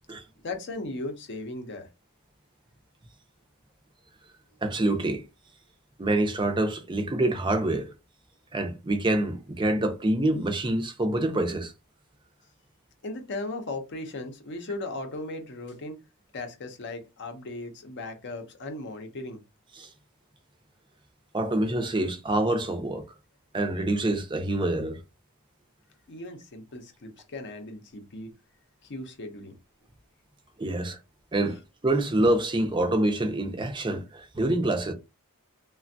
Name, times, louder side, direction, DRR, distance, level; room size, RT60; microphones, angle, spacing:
voice 1, 0.4-1.9 13.0-16.0 16.3-19.4 26.1-28.3 28.8-29.6, left 2 dB, 50° left, 0.6 m, -37 dB
voice 2, 4.6-5.2 6.0-7.9 8.5-11.7 19.7-19.9 21.3-23.0 23.5-25.0 30.6-31.0 31.3-31.6 31.8-34.9, right 1 dB, 20° right, 0.5 m, -26 dB
3.2 x 2.2 x 2.6 m
head